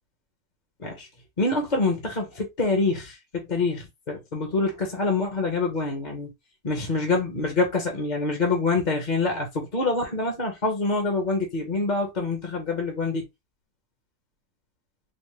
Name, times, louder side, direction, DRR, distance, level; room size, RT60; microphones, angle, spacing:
voice 1, 1.4-6.3 6.6-13.3, left 3 dB, 35° left, 0.9 m, -26 dB
4.4 x 2.1 x 3.0 m
omnidirectional pair, 1.7 m